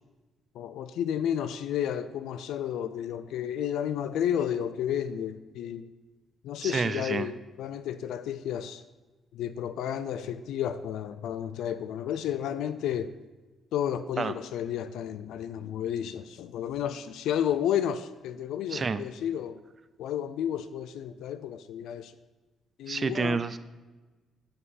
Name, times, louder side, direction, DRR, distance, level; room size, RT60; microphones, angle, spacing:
voice 1, 0.6-5.9 6.4-8.8 9.3-13.1 13.7-19.6 20.0-22.1 22.8-23.4, left 9 dB, 85° left, 12 dB, 0.4 m, -32 dB
voice 2, 6.6-7.3 14.2-14.3 18.7-19.0 22.9-23.6, right 4 dB, 40° right, 14 dB, 0.5 m, -29 dB
9.5 x 5.5 x 4.2 m, 1.2 s
cardioid pair, 90°, 0 cm